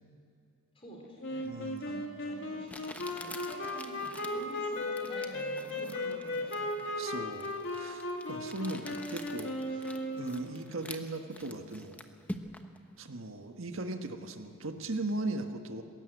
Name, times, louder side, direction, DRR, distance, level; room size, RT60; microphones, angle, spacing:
voice 1, 0.7-1.5 1.8-7.2 9.0-9.2 9.6-10.5, right 1 dB, 25° left, -1 dB, 4.0 m, -49 dB
Wind instrument woodwind instrument, 1.2-10.7, left 1 dB, 60° left, 2.3 m, -36 dB
voice 2, 1.4-2.0 6.9-9.5 10.2-12.0 13.0-15.8, right 2 dB, 75° right, 5 dB, 1.5 m, -38 dB
Crumpling crinkling, 1.8-1.9 2.7-12.8, left 1 dB, 5° left, 1.0 m, -47 dB
20.5 x 17.0 x 8.1 m, 2.7 s
head